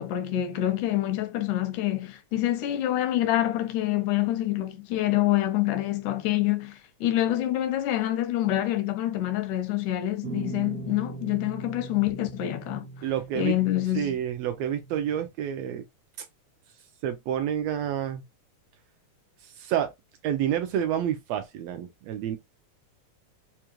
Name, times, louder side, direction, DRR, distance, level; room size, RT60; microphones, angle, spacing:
voice 1, 0.0-12.9 13.4-14.2, left 14 dB, 85° left, 2.2 m, -26 dB
sound 1, 10.2-15.2, right 4 dB, 70° right, 1.5 m, -40 dB
voice 2, 13.0-13.6 13.9-15.8 17.0-18.2 19.4-19.9 20.2-22.4, right 10 dB, 85° right, 1.5 m, -29 dB
5.2 x 2.4 x 2.9 m
omnidirectional pair, 3.5 m